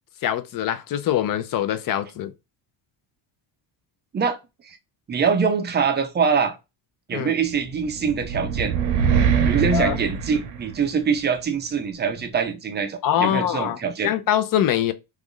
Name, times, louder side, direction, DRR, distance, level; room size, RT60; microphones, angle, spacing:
voice 1, 0.2-2.3 7.1-7.3 9.7-10.0 13.0-13.8 14.0-14.9, left 11 dB, 45° left, 0.5 m, -23 dB
voice 2, 5.1-6.6 7.1-8.7 9.4-14.1, right 6 dB, 25° right, 0.4 m, -24 dB
sound 1, 7.7-11.1, right 7 dB, 80° right, 0.7 m, -23 dB
3.0 x 2.4 x 3.6 m
cardioid pair, 150°, 48 cm